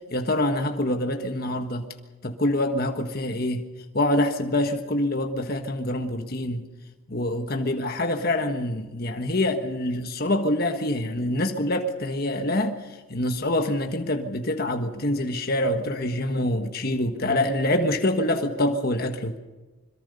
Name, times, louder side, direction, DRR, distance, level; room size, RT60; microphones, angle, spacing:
voice 1, 0.1-1.9 2.2-3.6 3.9-6.7 7.1-12.8 13.1-19.4, left 1 dB, 45° left, 5 dB, 1.5 m, -25 dB
25.0 x 22.5 x 5.5 m, 1.2 s
head